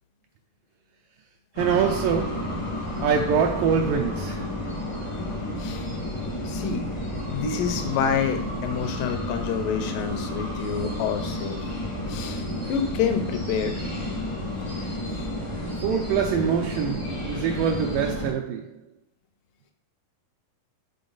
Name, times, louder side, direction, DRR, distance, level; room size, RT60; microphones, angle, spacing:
sound 1, 1.5-18.3, left 1 dB, 25° left, 0.6 m, -31 dB
voice 1, 1.6-2.6 3.0-4.5 15.8-18.7, right 7 dB, 80° right, 2.2 m, -24 dB
voice 2, 5.6-5.9 6.4-6.9 7.3-11.6 12.1-12.4 12.7-13.8 15.1-15.3, left 7 dB, 80° left, 2.4 m, -28 dB
7.0 x 4.1 x 3.9 m
omnidirectional pair, 4.0 m